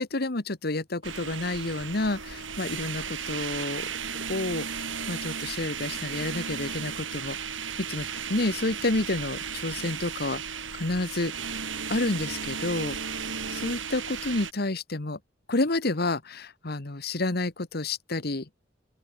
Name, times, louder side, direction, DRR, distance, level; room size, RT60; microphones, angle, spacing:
voice 1, 0.0-3.9 4.3-7.4 7.9-10.4 10.7-11.3 11.9-13.0 13.6-15.2 15.5-18.5, left 2 dB, 55° left, 1.5 m, -29 dB
sound 1, 1.0-14.5, right 6 dB, 90° right, 7.2 m, -35 dB
open air
head